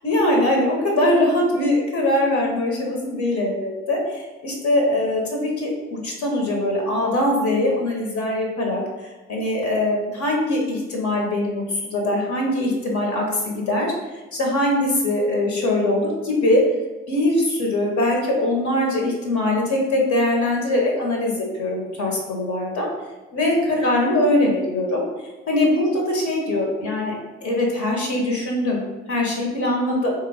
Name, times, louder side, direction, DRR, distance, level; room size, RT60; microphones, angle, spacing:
voice 1, 0.0-8.8 9.3-13.9 14.3-16.6 17.1-21.3 21.6-22.9 23.3-25.0 25.5-27.1 27.4-28.8 29.1-30.1, left 1 dB, 55° left, -1 dB, 0.9 m, -22 dB
3.4 x 2.3 x 3.4 m, 1.1 s
hypercardioid pair, 45°, 34 cm